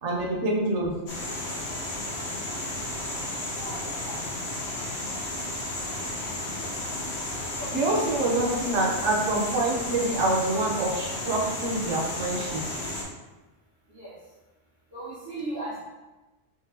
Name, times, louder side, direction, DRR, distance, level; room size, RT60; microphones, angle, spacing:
voice 1, 0.0-1.0 7.7-12.6, right 2 dB, 70° right, -3 dB, 1.1 m, -26 dB
sound 1, 1.1-13.0, left 1 dB, 65° left, 1.1 m, -33 dB
voice 2, 3.5-4.2 7.6-8.6 13.9-14.1 14.9-15.8, right 2 dB, 90° right, -14 dB, 1.9 m, -38 dB
3.6 x 3.4 x 2.8 m, 1.1 s
omnidirectional pair, 1.2 m